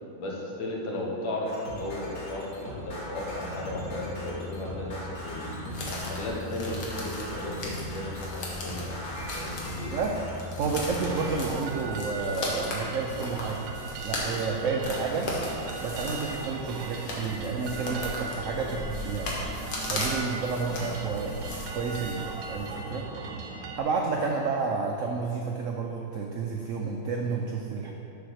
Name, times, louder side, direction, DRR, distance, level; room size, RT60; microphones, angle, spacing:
voice 1, 0.2-5.6 6.1-10.0 18.4-18.7, left 1 dB, 85° left, -2 dB, 2.0 m, -35 dB
sound 1, 1.5-11.4, left 1 dB, 40° left, 1.7 m, -38 dB
sound 2, 5.7-22.7, left 2 dB, 65° left, 1.8 m, -37 dB
voice 2, 10.6-13.6 14.0-15.3 15.8-19.3 19.9-21.3 21.7-23.1 23.8-27.9, right 4 dB, 85° right, 0 dB, 0.7 m, -30 dB
sound 3, 11.0-23.8, right 4 dB, 65° right, 1.0 m, -38 dB
7.1 x 4.6 x 6.3 m, 2.7 s
omnidirectional pair, 2.0 m